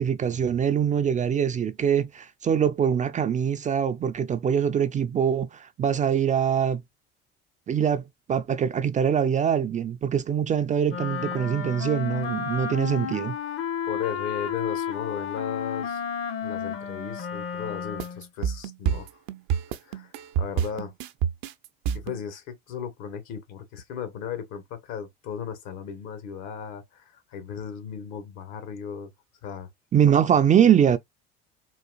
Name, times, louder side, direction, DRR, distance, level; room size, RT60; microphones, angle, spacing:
voice 1, 0.0-6.8 7.7-8.0 8.3-13.4 29.9-31.0, right 8 dB, 25° right, 0.3 m, -23 dB
Wind instrument woodwind instrument, 10.9-18.3, left 7 dB, 50° left, 0.9 m, -32 dB
voice 2, 13.9-16.0 16.4-19.1 19.8-20.9 21.9-29.1 29.4-29.7, left 7 dB, 70° left, 1.2 m, -36 dB
sound 1, 18.0-22.2, right 8 dB, 70° right, 0.6 m, -28 dB
4.0 x 2.4 x 2.3 m
hypercardioid pair, 70°, 29 cm